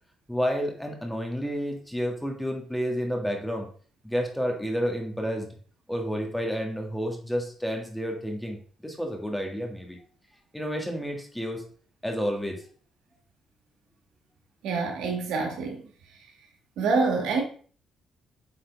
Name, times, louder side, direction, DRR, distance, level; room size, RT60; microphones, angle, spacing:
voice 1, 0.3-3.7 4.0-5.5 5.9-10.0 10.5-11.6 12.0-12.6, equal, 5° left, 1.7 m, -30 dB
voice 2, 14.6-15.9 16.8-17.4, right 4 dB, 90° right, 1.6 m, -26 dB
8.0 x 4.2 x 3.5 m
cardioid pair, 90°, 0 cm